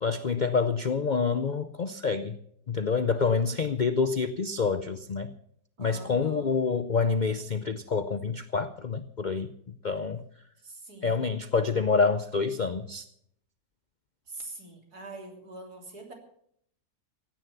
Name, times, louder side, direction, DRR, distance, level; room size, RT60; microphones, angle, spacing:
voice 1, 0.0-2.4 2.7-5.3 5.8-9.5 9.8-10.2 11.0-13.0, left 5 dB, 50° left, 11 dB, 0.5 m, -27 dB
voice 2, 5.8-6.5 10.6-11.3 14.3-16.1, right 2 dB, 70° right, 2 dB, 3.8 m, -44 dB
16.0 x 10.5 x 7.0 m, 0.69 s
omnidirectional pair, 1.7 m